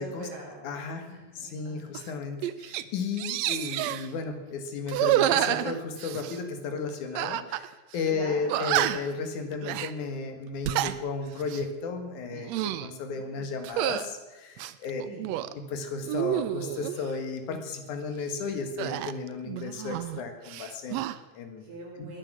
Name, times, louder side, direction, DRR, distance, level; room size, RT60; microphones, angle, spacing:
voice 1, 0.0-0.8 1.1-1.9 8.1-8.9 13.1-13.4 15.0-15.4 21.6-22.2, right 1 dB, 45° right, -2 dB, 5.1 m, -43 dB
voice 2, 0.6-1.1 1.4-15.0 15.6-21.6, left 4 dB, 70° left, 6 dB, 3.1 m, -34 dB
sound 1, 1.9-2.1 2.4-2.8 3.2-4.1 4.9-6.4 7.2-7.7 7.9-8.0 8.5-9.2 9.6-9.9 10.5-11.0 11.4-11.7 12.3-12.9 13.6-14.1 14.6-15.5 16.0-17.0 18.8-20.2 20.5-21.2, right 13 dB, 80° right, 1.6 m, -29 dB
20.0 x 9.9 x 6.2 m, 1.1 s
omnidirectional pair, 3.6 m